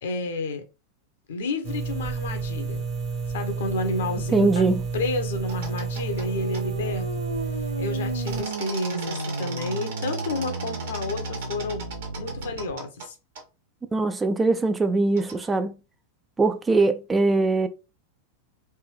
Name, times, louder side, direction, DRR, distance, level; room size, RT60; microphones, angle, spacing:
voice 1, 0.0-0.6 1.3-2.9 3.3-4.6 4.9-7.1 7.8-11.8 12.2-13.2, left 2 dB, 60° left, 0.8 m, -30 dB
sound 1, 1.6-8.4, right 4 dB, 35° right, 0.7 m, -30 dB
voice 2, 4.3-4.8 13.9-15.7 16.4-17.7, right 3 dB, 15° right, 0.3 m, -21 dB
sound 2, 5.5-6.3 6.5-6.6 8.3-13.1 13.4-13.5 15.2-15.5, right 4 dB, 55° right, 1.1 m, -38 dB
sound 3, 5.6-12.7, right 2 dB, 80° right, 0.4 m, -34 dB
3.3 x 2.6 x 3.2 m
figure-of-eight pair, 90°, 0 cm